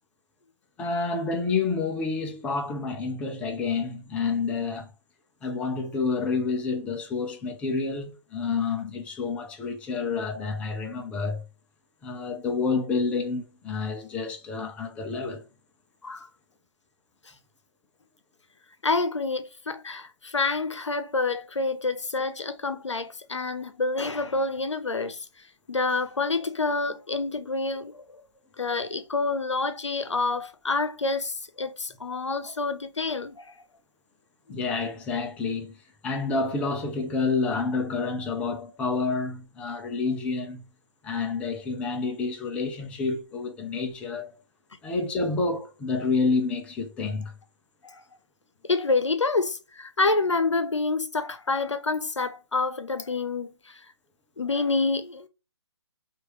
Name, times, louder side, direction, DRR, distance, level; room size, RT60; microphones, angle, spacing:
voice 1, 0.8-4.9 5.4-11.4 12.0-15.5 34.5-35.7 36.0-40.7 41.0-44.4 44.8-47.3, left 4 dB, 10° left, 0.5 m, -29 dB
voice 2, 18.8-25.3 25.7-28.2 28.6-33.6 47.8-48.0 48.7-53.8 54.4-55.3, left 3 dB, 80° left, 0.7 m, -28 dB
4.5 x 2.5 x 3.0 m
figure-of-eight pair, 140°, 15 cm